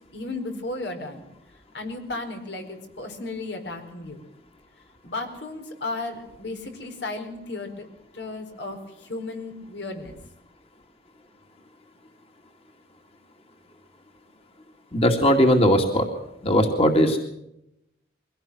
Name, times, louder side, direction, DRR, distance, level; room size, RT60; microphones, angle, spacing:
voice 1, 0.1-1.2 1.7-4.2 5.0-7.9 8.1-8.8 9.1-10.2, left 2 dB, 85° left, 5 dB, 4.6 m, -34 dB
voice 2, 14.9-16.1 16.4-17.2, equal, 35° left, 4 dB, 2.4 m, -19 dB
23.0 x 17.0 x 7.8 m, 0.82 s
head